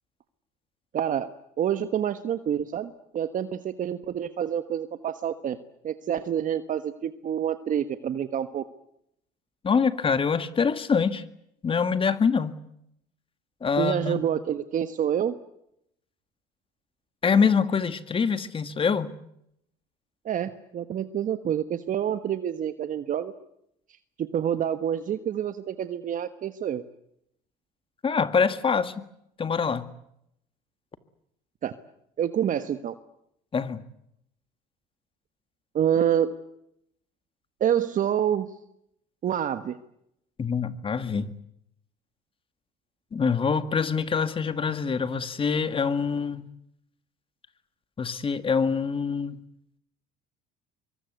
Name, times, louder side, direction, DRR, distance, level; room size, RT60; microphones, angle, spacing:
voice 1, 0.9-1.3 1.6-5.6 5.8-8.6 13.8-15.3 20.2-23.3 24.2-26.8 31.6-31.8 32.2-32.9 35.7-36.4 37.6-38.5 39.2-39.8, right 9 dB, 45° right, 11 dB, 1.4 m, -27 dB
voice 2, 9.6-11.2 11.6-12.6 13.6-14.3 17.2-19.1 28.0-29.0 29.4-29.9 33.5-33.8 40.4-41.3 43.1-46.5 48.0-49.4, left 5 dB, 30° left, 11 dB, 1.9 m, -25 dB
24.0 x 24.0 x 8.3 m, 0.76 s
supercardioid pair, 100°, 19 cm